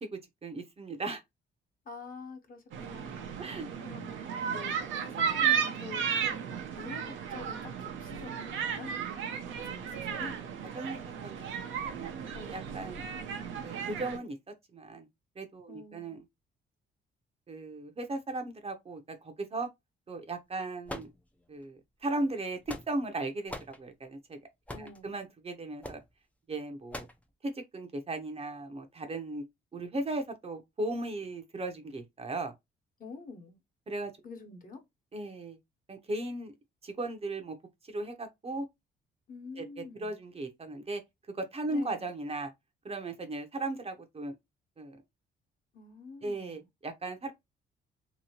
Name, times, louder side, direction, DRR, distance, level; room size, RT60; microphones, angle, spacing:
voice 1, 0.0-1.2 3.4-3.7 10.7-12.1 12.5-13.0 13.6-14.4 14.7-15.1 15.4-16.2 17.5-19.7 20.1-21.1 21.5-24.4 24.8-26.0 26.5-27.1 27.4-29.4 29.7-32.5 33.9-34.1 35.1-35.6 35.9-36.5 36.8-37.6 37.8-38.7 39.6-41.0 41.3-42.5 42.8-44.4 44.8-45.0 46.2-47.3, right 2 dB, 30° right, 0.7 m, -37 dB
voice 2, 1.8-4.2 4.5-8.9 9.3-10.3 12.3-12.7 15.7-16.2 24.7-25.1 33.0-33.6 34.2-34.8 39.3-40.1 41.7-42.1 45.7-46.7, left 4 dB, 45° left, 1.1 m, -47 dB
Playground noises, 2.7-14.2, right 7 dB, 80° right, 0.7 m, -34 dB
sound 1, 20.9-21.6 22.4-23.1 23.5-23.8 24.7-25.0 25.8-26.1 26.9-27.2, left 1 dB, 5° left, 0.5 m, -42 dB
2.9 x 2.7 x 2.8 m
cardioid pair, 90°, 20 cm